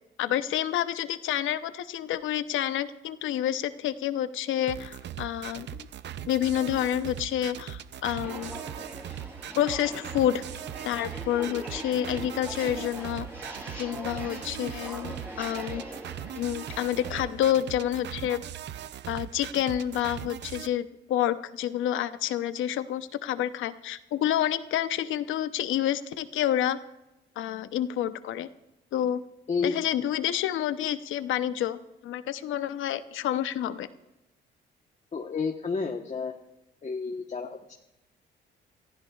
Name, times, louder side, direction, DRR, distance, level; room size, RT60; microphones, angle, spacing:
voice 1, 0.2-5.9 6.3-8.5 9.5-10.4 10.8-13.3 13.8-15.8 16.3-18.4 19.1-26.8 27.4-28.5 28.9-29.2 29.6-33.9, left 11 dB, 80° left, 12 dB, 0.8 m, -29 dB
sound 1, 4.7-20.7, right 10 dB, 60° right, 0.6 m, -40 dB
Walk footsteps, 8.2-17.3, right 1 dB, 10° right, 5.5 m, -41 dB
voice 2, 35.1-36.3 36.8-37.7, left 5 dB, 35° left, 2 dB, 1.2 m, -30 dB
26.5 x 15.0 x 2.4 m, 0.94 s
cardioid pair, 90°, 20 cm